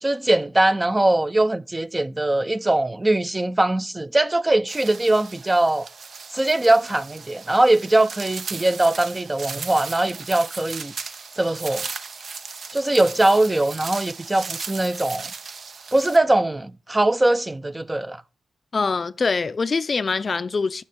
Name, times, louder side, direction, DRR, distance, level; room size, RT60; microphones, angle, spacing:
voice 1, 0.0-5.9 6.3-10.9 11.4-11.9 12.7-15.3 15.9-18.2, right 1 dB, 20° right, 0.5 m, -21 dB
sound 1, 4.7-16.2, right 5 dB, 60° right, 0.7 m, -36 dB
voice 2, 18.7-20.8, left 4 dB, 45° left, 0.5 m, -24 dB
6.9 x 6.6 x 6.5 m
cardioid pair, 90°, 0 cm